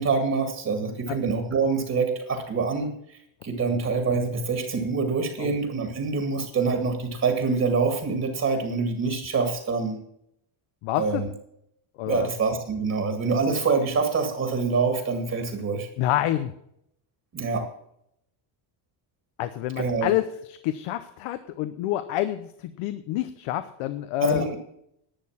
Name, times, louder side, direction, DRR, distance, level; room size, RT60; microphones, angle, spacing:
voice 1, 0.0-2.9 3.4-10.0 11.0-11.3 12.1-15.9 17.3-17.6 19.8-20.2 24.2-24.6, right 4 dB, 30° right, 5 dB, 2.1 m, -25 dB
voice 2, 0.8-1.2 3.7-3.8 5.4-5.5 10.8-11.2 12.0-12.3 16.0-16.5 19.4-24.4, left 14 dB, 85° left, 11 dB, 1.0 m, -28 dB
11.5 x 8.6 x 7.3 m, 0.75 s
cardioid pair, 160°, 50 cm